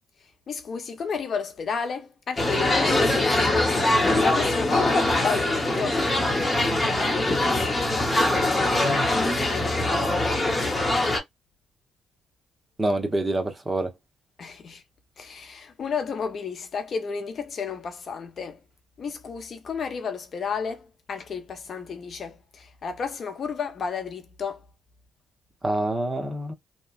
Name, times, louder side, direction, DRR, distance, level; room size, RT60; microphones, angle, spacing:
voice 1, 0.5-6.0 9.5-10.0 14.4-14.8 15.2-18.6 19.0-24.6, left 5 dB, 50° left, 0.7 m, -32 dB
sound 1, 2.4-11.2, left 2 dB, 20° left, 1.1 m, -23 dB
voice 2, 12.8-13.9 25.6-26.5, right 2 dB, 20° right, 0.9 m, -26 dB
2.9 x 2.3 x 2.4 m
cardioid pair, 90°, 0 cm